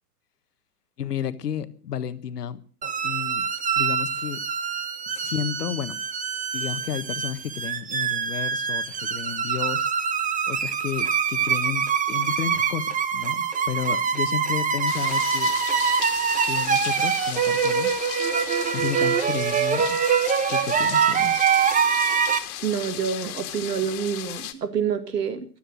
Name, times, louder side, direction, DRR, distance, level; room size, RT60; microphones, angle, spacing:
voice 1, 1.0-2.6 3.0-3.5 3.8-4.4 5.1-6.0 6.5-9.9 10.5-15.5 16.4-17.9 18.7-20.0 20.5-21.4, left 8 dB, 80° left, 13 dB, 1.5 m, -32 dB
sound 1, 2.8-22.4, right 7 dB, 15° right, 1.3 m, -24 dB
sound 2, 14.9-24.5, left 13 dB, 60° left, 2.2 m, -35 dB
voice 2, 22.6-25.5, right 7 dB, 90° right, 10 dB, 2.1 m, -27 dB
16.0 x 12.5 x 6.4 m, 0.43 s
hypercardioid pair, 105°, 47 cm